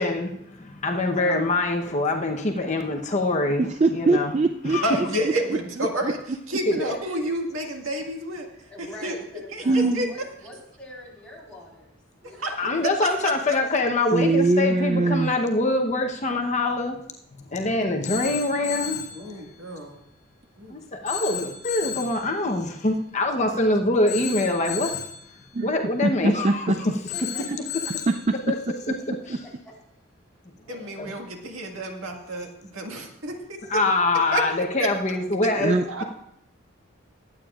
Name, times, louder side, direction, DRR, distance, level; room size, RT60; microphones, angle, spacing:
voice 1, 0.0-4.3 4.6-5.1 6.7-7.0 12.6-17.0 17.5-19.4 20.7-25.0 25.6-26.9 28.5-28.6 29.3-29.4 31.0-31.1 33.7-35.7, left 2 dB, 35° left, 2 dB, 0.9 m, -24 dB
voice 2, 1.1-1.4 4.8-6.2 6.5-8.5 9.0-9.2 9.5-10.1 12.4-12.5 13.0-13.6 19.1-20.0 20.6-20.8 30.7-33.8 34.3-34.4 34.8-34.9 35.7-36.0, right 1 dB, 85° right, 2 dB, 1.9 m, -30 dB
voice 3, 3.6-6.1 9.7-10.1 14.1-15.3 25.5-25.7 26.0-26.8 28.3-28.4 35.6-36.0, right 2 dB, 35° right, 8 dB, 0.4 m, -23 dB
voice 4, 8.7-13.1 27.1-28.8 29.4-29.7 30.7-31.0 34.1-34.4, left 1 dB, 5° left, -6 dB, 3.9 m, -45 dB
Telephone, 18.1-19.2 21.1-22.2 24.1-25.2 27.1-28.2, left 9 dB, 55° left, 4.7 m, -33 dB
21.5 x 8.8 x 2.5 m, 0.79 s
head